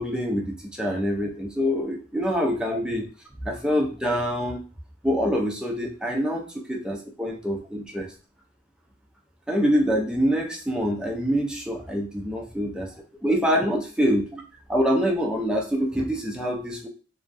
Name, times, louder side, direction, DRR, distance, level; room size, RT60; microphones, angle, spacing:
voice 1, 0.0-3.0 3.4-4.6 5.0-8.1 9.5-12.9 13.2-14.4 14.7-16.9, equal, 5° right, -1 dB, 0.4 m, -25 dB
2.5 x 2.3 x 2.3 m, 0.37 s
head